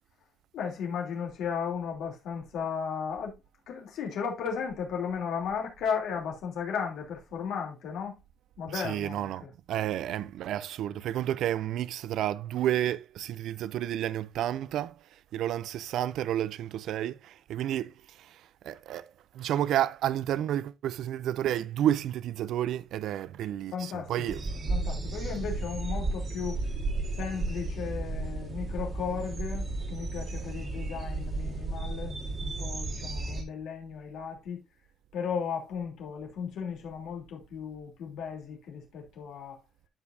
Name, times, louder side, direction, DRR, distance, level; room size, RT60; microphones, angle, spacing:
voice 1, 0.5-3.3 3.7-8.2 8.6-9.5 23.7-24.4 24.7-26.6 27.1-34.6 35.1-39.6, left 6 dB, 85° left, 3.1 m, -35 dB
voice 2, 8.7-19.1 19.3-24.4, right 11 dB, 75° right, 0.4 m, -31 dB
sound 1, 24.3-33.4, right 2 dB, 35° right, 1.6 m, -33 dB
12.5 x 5.3 x 2.6 m
cardioid pair, 170°, 0 cm